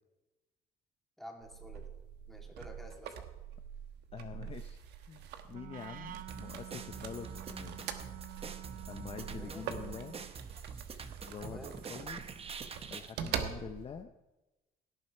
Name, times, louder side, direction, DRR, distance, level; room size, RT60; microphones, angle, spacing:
voice 1, 1.2-1.9 2.3-3.3 9.3-9.6 11.4-11.8, equal, ahead, 1 dB, 2.5 m, -50 dB
sound 1, 1.4-14.0, right 9 dB, 85° right, 1.2 m, -44 dB
voice 2, 4.1-7.9 8.9-10.2 11.3-12.2 12.9-14.1, left 7 dB, 35° left, 7 dB, 0.7 m, -46 dB
Wind instrument woodwind instrument, 5.5-10.3, right 14 dB, 55° right, 0.6 m, -49 dB
sound 2, 6.3-13.1, right 5 dB, 35° right, 0.9 m, -46 dB
17.0 x 9.6 x 4.4 m, 1.0 s
cardioid pair, 110°, 17 cm